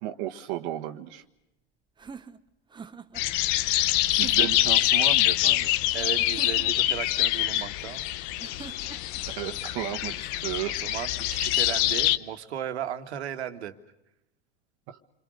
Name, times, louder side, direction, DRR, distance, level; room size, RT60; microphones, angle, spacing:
voice 1, 0.0-1.2 4.2-5.7 9.3-10.8 14.9-15.0, right 13 dB, 55° right, 5 dB, 1.5 m, -34 dB
sound 1, 2.0-3.3 4.1-4.7 6.2-7.0 8.4-9.2, right 5 dB, 15° right, 1.0 m, -44 dB
sound 2, 3.2-12.2, left 15 dB, 55° left, 0.9 m, -25 dB
voice 2, 5.9-8.0 10.8-13.7, right 10 dB, 80° right, 7 dB, 1.9 m, -35 dB
28.5 x 23.0 x 6.5 m, 0.91 s
hypercardioid pair, 110°, 32 cm